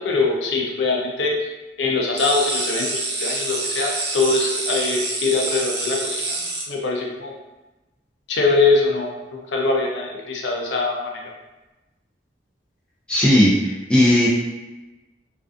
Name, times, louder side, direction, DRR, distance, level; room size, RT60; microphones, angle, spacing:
voice 1, 0.0-1.3 1.8-7.3 8.3-11.0, left 3 dB, 85° left, 0 dB, 0.5 m, -22 dB
sound 1, 2.2-6.6, right 2 dB, 60° right, 0.6 m, -27 dB
voice 2, 13.1-14.3, left 1 dB, 5° left, -7 dB, 0.4 m, -16 dB
2.4 x 2.3 x 2.4 m, 1.1 s
head